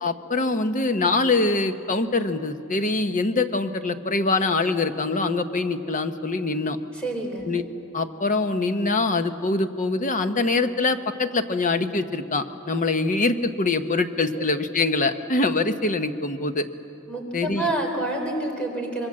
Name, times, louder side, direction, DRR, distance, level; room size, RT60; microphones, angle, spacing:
voice 1, 0.0-6.8 7.5-7.6 7.9-16.7 17.3-17.7, left 3 dB, 40° left, 9 dB, 1.0 m, -24 dB
voice 2, 6.9-7.4 14.3-14.4 17.1-19.1, right 2 dB, 5° left, 1 dB, 3.9 m, -28 dB
25.0 x 22.5 x 7.7 m, 2.8 s
head